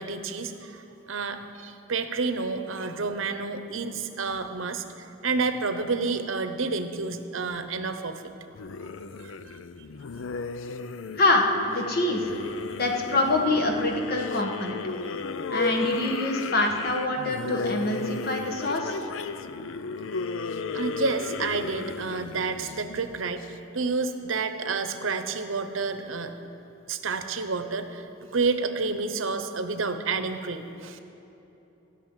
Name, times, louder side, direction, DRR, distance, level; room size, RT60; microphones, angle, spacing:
voice 1, 0.0-8.2 9.2-9.6 20.7-26.3 26.9-31.0, right 4 dB, 80° right, 9 dB, 0.9 m, -30 dB
sound 1, 8.5-23.4, left 4 dB, 75° left, 0.5 m, -34 dB
voice 2, 11.1-12.3 12.8-14.8 15.5-18.9, left 2 dB, 50° left, 2 dB, 1.5 m, -25 dB
15.0 x 6.4 x 9.0 m, 3.0 s
head